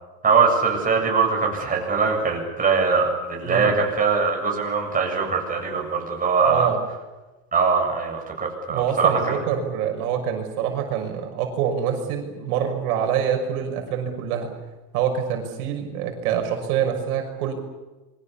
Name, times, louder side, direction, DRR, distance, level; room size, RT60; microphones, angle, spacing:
voice 1, 0.2-6.7 7.5-9.4, right 5 dB, 20° right, 0 dB, 7.8 m, -22 dB
voice 2, 6.4-6.8 8.7-14.5 14.9-17.5, right 8 dB, 70° right, 3 dB, 6.2 m, -25 dB
27.5 x 24.0 x 7.1 m, 1.1 s
supercardioid pair, 135°, 45 cm